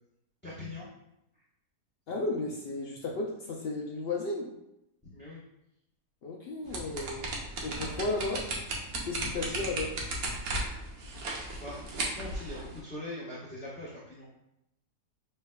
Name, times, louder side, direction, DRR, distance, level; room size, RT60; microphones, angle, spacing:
voice 1, 0.4-0.9 5.0-5.4 11.5-14.3, left 2 dB, 10° left, -11 dB, 0.9 m, -42 dB
voice 2, 2.1-4.5 6.2-7.3 7.6-8.4 9.0-10.0, left 2 dB, 85° left, -1 dB, 0.5 m, -34 dB
sound 1, 6.7-12.8, right 2 dB, 70° right, 1.3 m, -35 dB
6.2 x 3.3 x 2.2 m, 0.84 s
omnidirectional pair, 1.7 m